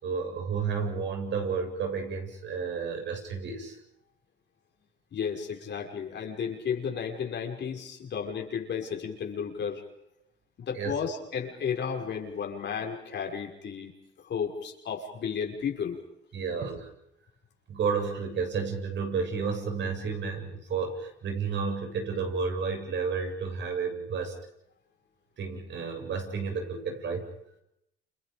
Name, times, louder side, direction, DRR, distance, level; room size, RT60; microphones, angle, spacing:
voice 1, 0.0-3.8 10.7-10.9 16.3-16.9 17.7-24.3 25.4-27.2, right 5 dB, 65° right, 3 dB, 7.6 m, -31 dB
voice 2, 5.1-9.8 10.6-13.9 14.2-16.0, left 7 dB, 65° left, 2 dB, 5.9 m, -33 dB
29.5 x 29.0 x 5.2 m, 0.80 s
cardioid pair, 90°, 20 cm